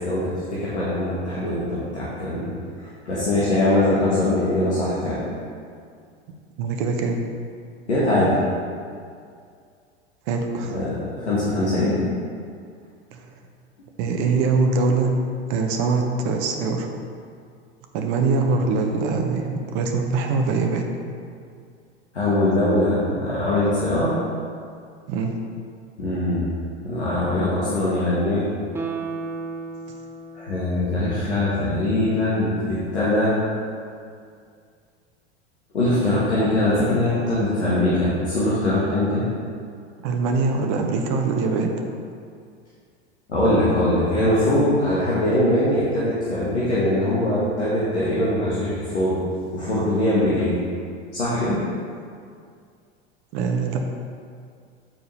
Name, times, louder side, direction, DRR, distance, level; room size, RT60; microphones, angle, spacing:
voice 1, 0.0-2.5 3.0-5.2 7.9-8.4 10.7-12.0 22.1-24.1 26.0-26.5 26.8-28.4 30.3-33.4 35.7-39.2 43.3-49.2 49.5-50.6 51.1-51.6, left 1 dB, 80° left, -9 dB, 1.5 m, -22 dB
voice 2, 6.6-7.2 10.3-10.8 13.1-13.2 14.0-15.2 15.5-16.9 17.9-20.9 25.1-25.3 40.0-41.7 53.3-53.8, right 4 dB, 45° right, 3 dB, 0.8 m, -23 dB
Guitar, 28.7-32.0 32.4-32.5, right 4 dB, 10° right, 0.4 m, -35 dB
8.7 x 4.6 x 3.2 m, 2.2 s
figure-of-eight pair, 85°, 33 cm